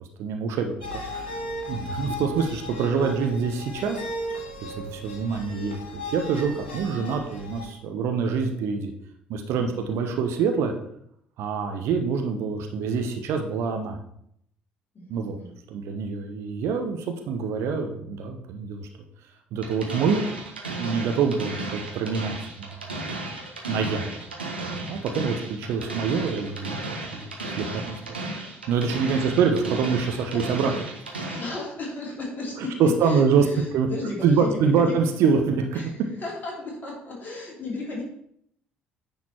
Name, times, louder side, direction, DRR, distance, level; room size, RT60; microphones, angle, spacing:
voice 1, 0.2-1.3 1.7-4.0 4.6-8.9 9.3-10.7 11.4-14.0 15.1-15.4 15.7-18.9 19.5-20.2 20.8-23.0 23.7-24.1 24.7-26.8 27.1-27.3 27.6-28.0 28.7-30.7 32.8-33.4 33.7-33.9 34.2-35.8, right 5 dB, 55° right, 5 dB, 0.9 m, -25 dB
sound 1, 0.8-7.7, left 1 dB, 75° left, 1.4 m, -36 dB
voice 2, 14.9-15.5 29.1-29.3 30.3-30.4 31.3-34.9 35.7-38.0, left 2 dB, 35° left, -2 dB, 3.1 m, -35 dB
sound 2, 19.6-31.6, right 2 dB, 85° right, 1.1 m, -34 dB
9.6 x 4.2 x 4.4 m, 0.72 s
figure-of-eight pair, 50°, 5 cm